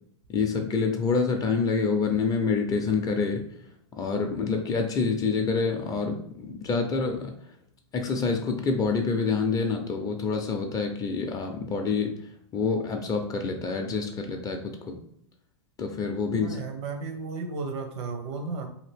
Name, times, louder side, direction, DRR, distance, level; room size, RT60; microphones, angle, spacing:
voice 1, 0.3-3.4 3.9-7.3 7.9-12.1 12.5-15.0 15.8-16.6, left 4 dB, 25° left, 4 dB, 0.4 m, -27 dB
voice 2, 16.4-18.7, right 4 dB, 70° right, 5 dB, 0.7 m, -34 dB
2.8 x 2.5 x 3.3 m, 0.70 s
hypercardioid pair, 110°, 15 cm